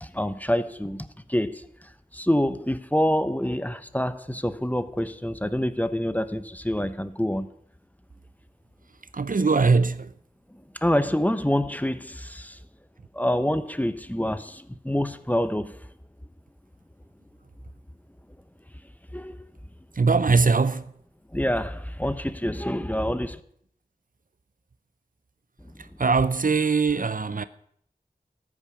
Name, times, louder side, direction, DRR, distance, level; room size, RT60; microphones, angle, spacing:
voice 1, 0.0-1.6 2.1-7.5 10.8-12.6 13.1-15.8 19.1-19.4 21.3-23.4, equal, 10° left, 0.9 m, -26 dB
voice 2, 9.1-10.1 20.0-20.8 26.0-27.4, right 4 dB, 60° right, 0.6 m, -21 dB
13.5 x 8.8 x 7.0 m
wide cardioid pair, 50°, 16 cm